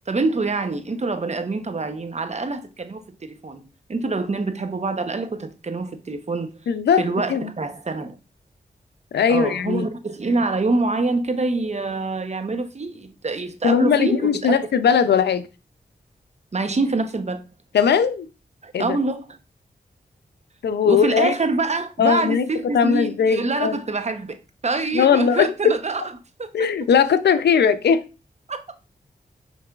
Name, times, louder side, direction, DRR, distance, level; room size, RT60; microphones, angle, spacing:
voice 1, 0.1-6.6 7.0-8.2 9.3-14.6 16.5-17.4 18.6-19.4 20.8-26.1 26.4-26.7 28.5-28.6, right 3 dB, 40° right, 0.8 m, -25 dB
voice 2, 6.7-7.5 9.1-9.9 13.6-15.5 17.7-18.3 18.7-19.0 20.6-21.3 22.0-22.4 22.7-23.8 24.9-25.5 26.5-28.0, left 7 dB, 90° left, 0.4 m, -19 dB
5.8 x 3.9 x 2.3 m
cardioid pair, 50°, 17 cm